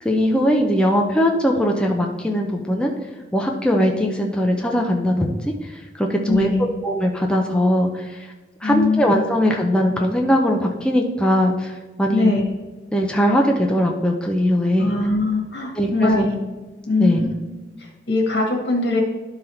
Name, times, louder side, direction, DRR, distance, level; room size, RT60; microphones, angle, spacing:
voice 1, 0.0-2.9 3.3-5.4 6.0-6.5 6.8-8.3 8.6-11.7 12.0-12.3 12.9-14.9 15.8-16.3 17.0-17.2, equal, 5° left, 1 dB, 0.6 m, -20 dB
voice 2, 6.3-6.7 8.6-9.3 12.1-12.4 14.8-16.4 16.8-17.3 17.8-19.0, left 3 dB, 90° left, 0 dB, 1.8 m, -21 dB
11.0 x 4.0 x 4.3 m, 1.2 s
head